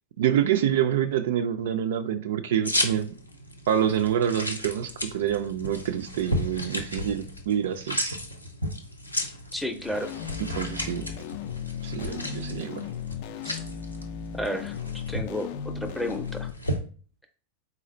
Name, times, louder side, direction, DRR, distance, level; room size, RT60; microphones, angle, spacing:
voice 1, 0.2-3.1 3.7-8.2 10.6-11.1 11.8-12.9, right 9 dB, 55° right, 0.3 m, -27 dB
sound 1, 2.7-16.8, left 1 dB, 85° left, 0.6 m, -34 dB
voice 2, 9.5-10.1 13.4-13.6 14.3-16.5, left 1 dB, 5° left, 0.6 m, -32 dB
sound 2, 9.9-16.5, left 7 dB, 45° left, 0.3 m, -36 dB
4.0 x 2.4 x 4.1 m
figure-of-eight pair, 90°, 0 cm